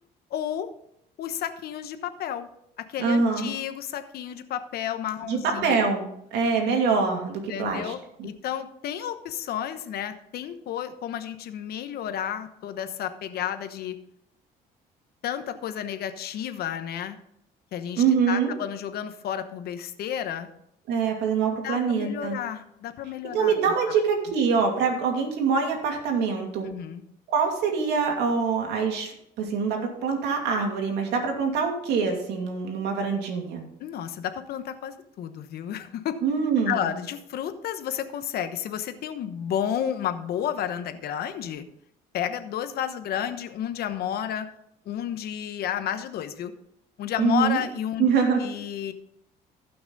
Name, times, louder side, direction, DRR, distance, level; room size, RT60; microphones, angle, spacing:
voice 1, 0.3-0.7 1.2-2.5 2.8-5.8 7.5-14.0 15.2-17.2 17.7-20.5 21.6-23.5 23.9-24.0 26.6-27.0 33.8-36.2 36.7-41.6 42.1-44.5 44.9-46.5 47.0-48.1 48.4-48.9, left 10 dB, 65° left, 10 dB, 1.0 m, -31 dB
voice 2, 3.0-3.5 5.3-7.9 8.2-8.3 18.0-18.5 20.9-22.4 23.3-26.7 27.3-33.6 36.2-36.9 47.2-47.6 48.0-48.4, right 5 dB, 80° right, 3 dB, 2.5 m, -24 dB
15.5 x 6.0 x 4.0 m, 0.75 s
cardioid pair, 110°, 17 cm